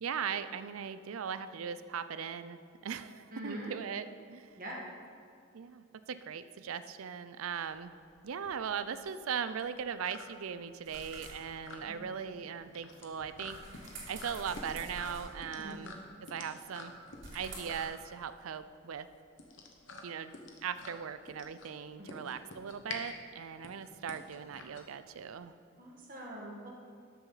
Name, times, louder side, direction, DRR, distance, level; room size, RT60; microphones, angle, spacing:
voice 1, 0.0-4.5 5.5-7.9 8.2-13.6 14.1-15.9 16.3-16.9 17.3-19.1 20.0-20.3 20.6-25.6, right 7 dB, 85° right, 13 dB, 0.4 m, -39 dB
voice 2, 3.3-3.7 4.6-4.8 11.9-12.0 15.6-15.8 22.0-22.2 25.8-26.7, right 1 dB, 40° right, -2 dB, 1.7 m, -43 dB
sound 1, 7.6-25.4, left 3 dB, 60° left, 1.1 m, -49 dB
sound 2, 10.8-17.8, right 2 dB, 60° right, 2.6 m, -50 dB
13.0 x 6.9 x 4.0 m, 2.3 s
head